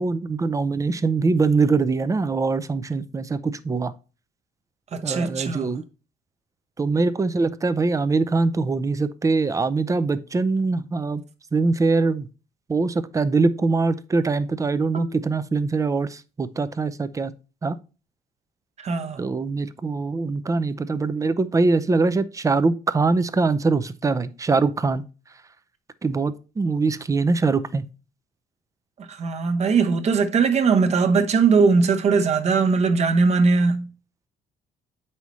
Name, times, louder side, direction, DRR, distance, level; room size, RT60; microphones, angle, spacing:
voice 1, 0.0-3.9 5.0-5.8 6.8-11.2 11.5-12.3 12.7-17.3 17.6-17.8 19.2-25.0 26.0-27.8, right 3 dB, 20° right, 0.5 m, -23 dB
voice 2, 4.9-5.7 14.9-15.2 18.8-19.2 29.0-33.9, right 4 dB, 40° right, 1.0 m, -20 dB
8.0 x 5.5 x 3.1 m
cardioid pair, 110°, 17 cm